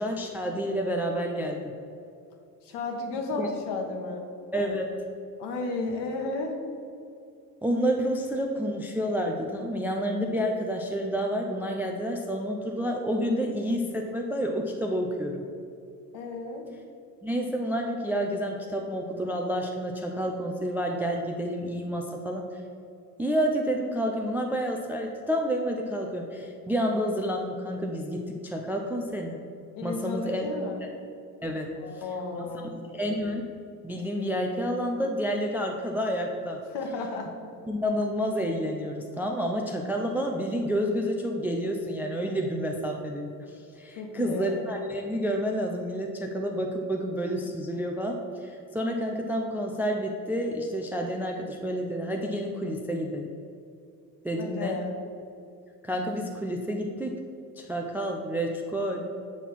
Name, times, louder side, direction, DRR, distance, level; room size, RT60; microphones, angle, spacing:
voice 1, 0.0-1.7 3.4-3.5 4.5-4.9 7.6-15.4 17.2-22.5 23.2-29.4 29.8-30.4 31.4-31.7 31.9-32.1 32.4-32.5 32.8-33.4 33.8-36.6 37.7-43.3 43.8-53.3 54.2-54.8 55.8-57.2 57.6-59.0, equal, 5° right, 1 dB, 0.4 m, -29 dB
voice 2, 2.6-4.2 5.4-6.6 16.1-16.7 29.7-30.8 31.8-32.8 36.7-37.3 44.0-44.6 54.4-54.9, left 3 dB, 50° left, 3 dB, 1.4 m, -33 dB
7.4 x 4.1 x 5.9 m, 2.5 s
figure-of-eight pair, 65°, 50 cm